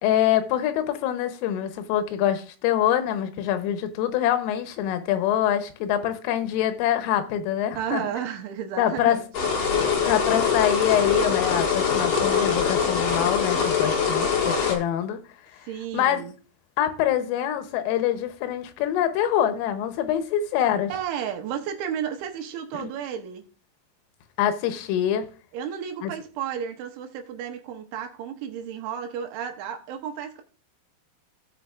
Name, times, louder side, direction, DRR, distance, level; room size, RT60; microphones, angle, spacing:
voice 1, 0.0-8.0 8.8-9.2 10.1-15.2 15.9-16.2 16.8-20.9 22.8-22.9 24.4-25.3 26.0-26.1, left 10 dB, 90° left, 3.5 m, -25 dB
voice 2, 7.8-9.3 15.7-16.3 20.9-23.4 25.5-30.4, right 8 dB, 80° right, 3.0 m, -32 dB
sound 1, 9.3-14.8, left 6 dB, 75° left, 1.5 m, -23 dB
16.5 x 5.6 x 2.4 m
omnidirectional pair, 5.7 m